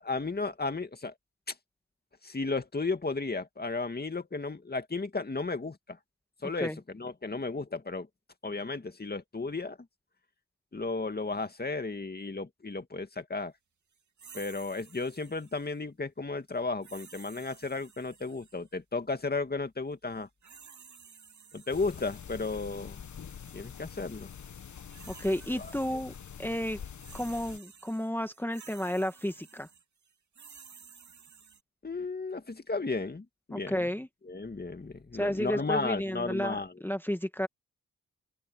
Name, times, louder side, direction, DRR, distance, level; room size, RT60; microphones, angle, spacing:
voice 1, 0.0-1.1 1.5-1.6 2.2-6.0 6.4-8.1 8.4-9.8 10.7-13.5 14.3-20.3 21.5-23.0 23.5-24.3 25.5-25.7 31.8-33.9 34.3-36.7, left 3 dB, 30° left, 2.2 m, -34 dB
sound 1, 14.2-15.8 16.8-18.7 20.1-22.6 23.3-23.5 24.6-26.2 26.5-31.6, right 6 dB, 65° right, 2.4 m, -53 dB
sound 2, 21.7-27.6, left 7 dB, 65° left, 1.5 m, -45 dB
voice 2, 25.1-26.1 26.4-26.8 27.1-29.7 33.5-34.1 35.1-37.5, equal, 5° left, 1.6 m, -32 dB
open air
cardioid pair, 60°, 31 cm